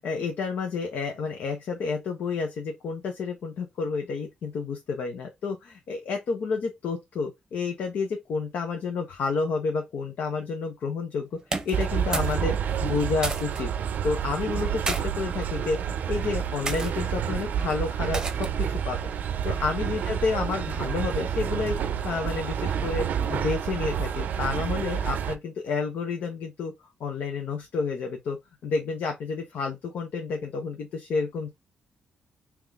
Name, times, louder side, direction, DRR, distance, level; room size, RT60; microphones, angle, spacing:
voice 1, 0.0-11.4 11.6-13.7 14.0-19.0 19.4-26.7 27.0-28.4 28.6-31.5, left 4 dB, 70° left, 0.9 m, -30 dB
sound 1, 11.4-12.4 12.7-13.6 14.5-15.0 15.8-16.1 16.6-16.9 18.1-18.6, right 3 dB, 20° right, 0.8 m, -32 dB
sound 2, 11.7-25.4, right 8 dB, 65° right, 0.5 m, -29 dB
3.6 x 3.0 x 3.5 m
cardioid pair, 145°, 3 cm